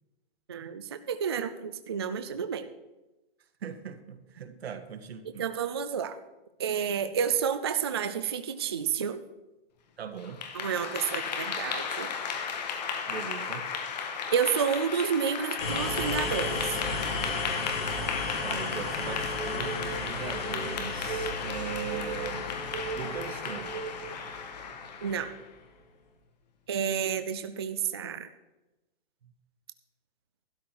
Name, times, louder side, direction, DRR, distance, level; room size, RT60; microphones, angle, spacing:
voice 1, 0.5-2.7 5.4-6.2 6.6-9.2 10.5-12.1 14.3-16.8 25.0-25.3 26.7-28.3, right 7 dB, 25° right, 9 dB, 0.3 m, -30 dB
voice 2, 3.6-5.5 10.0-10.4 13.1-13.7 18.4-22.5 22.9-23.7, right 7 dB, 90° right, 8 dB, 1.7 m, -39 dB
Clapping / Applause, 10.2-25.5, left 6 dB, 45° left, 1.5 m, -35 dB
sound 1, 15.6-25.3, left 3 dB, 70° left, 3.5 m, -35 dB
sound 2, 19.4-24.2, right 6 dB, 70° right, 2.2 m, -39 dB
12.5 x 11.5 x 4.5 m, 1.0 s
hypercardioid pair, 175°, 30 cm